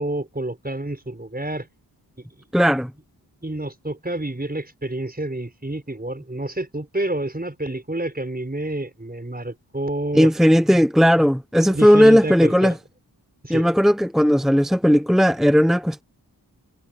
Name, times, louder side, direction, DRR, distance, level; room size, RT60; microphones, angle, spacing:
voice 1, 0.0-1.7 2.2-2.3 3.4-10.3 11.7-12.8 13.4-13.7, right 1 dB, 20° right, 5.5 m, -28 dB
voice 2, 2.5-2.9 10.1-12.7 13.5-16.0, equal, ahead, 1.0 m, -16 dB
cardioid pair, 50°, 42 cm